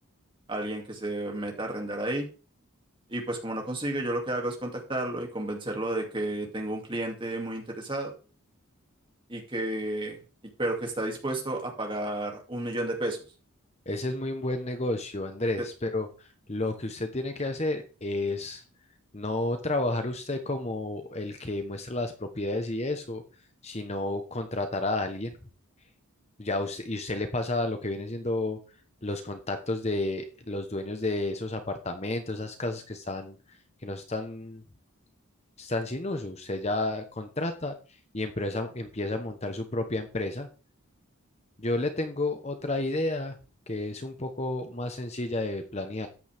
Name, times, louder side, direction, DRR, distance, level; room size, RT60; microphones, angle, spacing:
voice 1, 0.5-2.3 3.1-8.1 9.3-10.2 10.6-13.2 15.6-15.7, right 1 dB, 20° right, 1 dB, 2.6 m, -32 dB
voice 2, 13.9-16.1 16.5-18.6 19.1-23.2 23.6-25.4 26.4-28.6 29.0-33.4 33.8-34.6 35.6-37.8 38.1-40.5 41.6-43.3 43.7-46.1, left 2 dB, 30° left, 7 dB, 1.1 m, -31 dB
13.5 x 9.3 x 3.6 m, 0.35 s
head